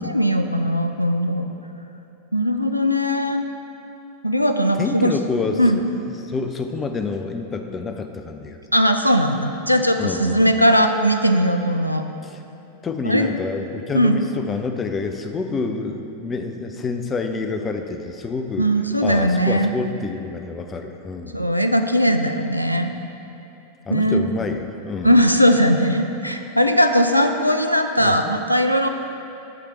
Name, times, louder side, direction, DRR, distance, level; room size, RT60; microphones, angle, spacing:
voice 1, 0.0-1.5 2.3-3.4 4.2-5.1 5.6-5.8 8.7-12.1 13.0-13.3 13.9-14.2 18.6-19.7 21.3-22.9 23.9-24.3 25.0-28.9, equal, 90° left, 6 dB, 0.3 m, -19 dB
voice 2, 4.8-5.6 5.9-8.6 10.0-10.4 12.2-12.4 12.8-18.7 19.0-21.5 23.9-25.2 28.0-28.1, left 4 dB, 20° left, 6 dB, 0.5 m, -28 dB
8.3 x 3.3 x 5.9 m, 2.8 s
figure-of-eight pair, 90°, 0 cm